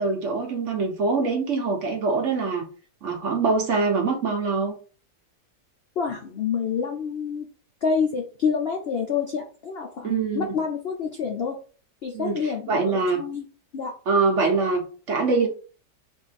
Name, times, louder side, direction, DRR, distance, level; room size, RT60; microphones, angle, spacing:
voice 1, 0.0-2.6 3.0-4.7 10.0-10.6 12.1-13.2 14.1-15.5, right 4 dB, 55° right, 1 dB, 1.0 m, -24 dB
voice 2, 6.0-7.5 7.8-11.6 12.0-13.5 13.7-13.9, left 6 dB, 75° left, 2 dB, 0.5 m, -27 dB
3.6 x 2.6 x 4.1 m, 0.39 s
omnidirectional pair, 1.8 m